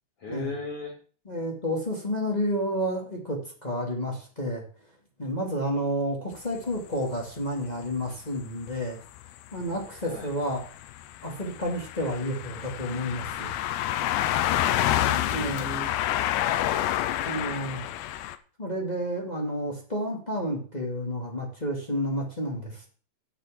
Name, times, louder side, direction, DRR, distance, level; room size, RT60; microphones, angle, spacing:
voice 1, 0.2-1.0 10.0-10.3 14.8-16.0, left 2 dB, 45° left, -1 dB, 2.3 m, -37 dB
voice 2, 1.2-4.6 5.2-9.0 9.5-10.6 11.2-13.5 15.3-15.6 17.2-17.9 18.6-22.9, equal, 20° left, -1 dB, 1.2 m, -30 dB
sound 1, 6.3-6.4 7.9-8.0 8.7-8.8 9.1-9.3 9.6-18.4, left 12 dB, 80° left, 2.8 m, -28 dB
8.3 x 6.8 x 7.6 m, 0.40 s
omnidirectional pair, 5.1 m